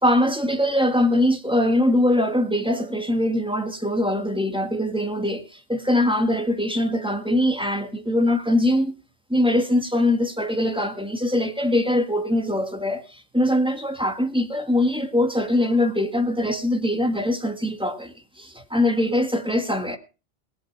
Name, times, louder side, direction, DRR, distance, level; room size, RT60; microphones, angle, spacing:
voice 1, 0.0-5.4 5.7-8.9 9.3-20.0, left 1 dB, 5° right, 1.7 m, -22 dB
18.5 x 8.0 x 6.0 m
omnidirectional pair, 1.3 m